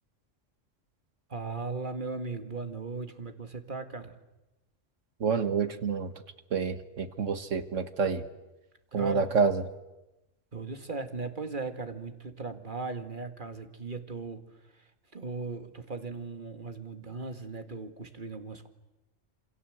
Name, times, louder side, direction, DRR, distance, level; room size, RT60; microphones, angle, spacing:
voice 1, 1.3-4.2 8.9-9.3 10.5-18.7, right 4 dB, 40° right, 7 dB, 2.2 m, -38 dB
voice 2, 5.2-6.1 6.5-8.2 8.9-9.6, right 5 dB, 85° right, 10 dB, 1.9 m, -28 dB
28.0 x 26.0 x 8.0 m, 0.98 s
omnidirectional pair, 1.3 m